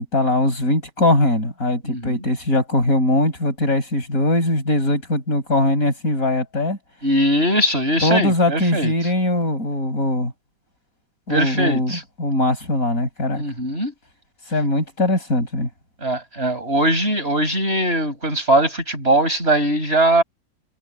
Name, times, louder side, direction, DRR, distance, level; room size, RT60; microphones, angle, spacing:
voice 1, 0.0-6.8 8.0-10.3 11.3-13.4 14.5-15.7, left 1 dB, 45° left, 6.4 m, -21 dB
voice 2, 1.8-2.2 7.0-8.9 11.3-12.0 13.3-13.9 16.0-20.2, right 1 dB, 35° right, 7.1 m, -20 dB
omnidirectional pair, 2.0 m